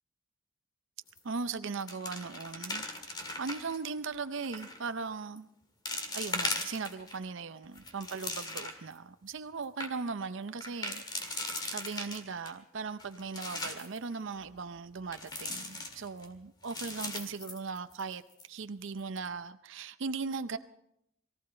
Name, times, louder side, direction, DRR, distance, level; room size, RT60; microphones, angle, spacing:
sound 1, 1.1-1.4 1.7-3.8 4.4-4.8 5.4-5.5 5.9-7.2 7.6-8.9 9.3-9.4 9.6-9.9 10.6-12.5 13.0-14.0 15.1-16.3 16.6-18.1 18.4-18.5 19.0-19.3, left 2 dB, 20° left, 1.8 m, -38 dB
voice 1, 1.2-5.5 6.1-18.2 18.5-20.6, right 4 dB, 65° right, 0.6 m, -38 dB
23.0 x 15.0 x 4.3 m
head